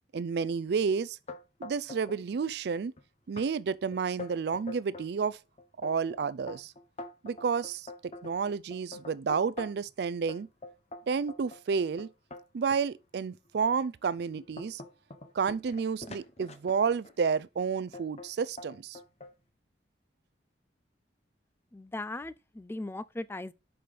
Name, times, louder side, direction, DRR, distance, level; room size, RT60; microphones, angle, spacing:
voice 1, 0.1-1.2 1.6-2.9 3.3-5.4 5.8-6.7 7.2-10.5 11.1-12.1 12.5-14.8 15.3-19.0, right 5 dB, 65° right, 0.4 m, -30 dB
sound 1, 1.3-2.2 2.5-3.0 3.4-3.5 3.9-5.1 5.6-9.9 10.3-12.8 13.5-13.6 14.1-17.2 17.9-18.3 18.6-19.3, left 2 dB, 40° left, 0.9 m, -45 dB
voice 2, 21.7-23.5, left 2 dB, 15° left, 0.4 m, -38 dB
5.9 x 5.0 x 5.1 m
head